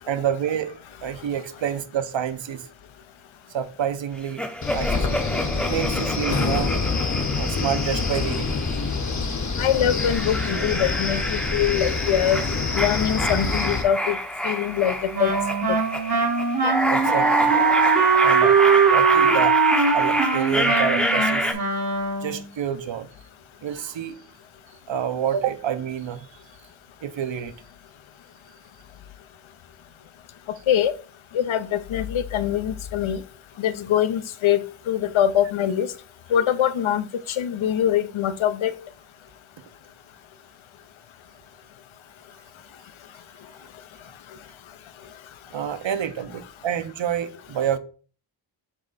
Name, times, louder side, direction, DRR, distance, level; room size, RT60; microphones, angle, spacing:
voice 1, 0.1-0.7 1.0-2.7 3.5-4.4 4.7-6.7 7.4-8.6 16.9-17.5 18.2-19.6 19.9-21.5 22.2-23.1 23.6-24.2 24.9-26.3 27.0-27.5 45.5-47.8, right 9 dB, 70° right, 0.7 m, -28 dB
sound 1, 4.4-9.1 9.6-21.5, equal, ahead, 0.6 m, -28 dB
Wind, 4.6-13.8, left 4 dB, 35° left, 0.8 m, -26 dB
voice 2, 9.6-12.4 12.7-14.2 14.4-15.3 15.7-15.8 30.7-30.9 31.3-33.2 33.6-35.9 36.3-38.7, left 10 dB, 75° left, 0.6 m, -23 dB
Wind instrument woodwind instrument, 15.1-22.5, right 5 dB, 55° right, 1.1 m, -20 dB
7.5 x 3.2 x 4.0 m
wide cardioid pair, 155°, 47 cm